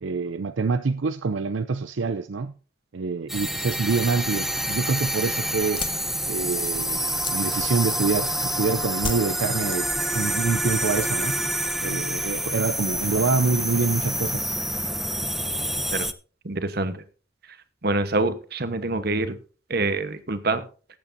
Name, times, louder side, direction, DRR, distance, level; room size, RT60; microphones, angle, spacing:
voice 1, 0.0-2.5 2.9-5.9 6.3-11.4 11.8-14.6, right 4 dB, 75° right, 0.5 m, -26 dB
sound 1, 3.3-16.1, right 1 dB, ahead, 0.5 m, -27 dB
sound 2, 5.6-8.3 9.0-10.5 10.8-11.4, left 5 dB, 25° left, 1.0 m, -36 dB
voice 2, 16.4-17.0 17.8-19.4 19.7-20.6, right 2 dB, 55° right, 1.1 m, -25 dB
19.0 x 8.5 x 2.7 m
head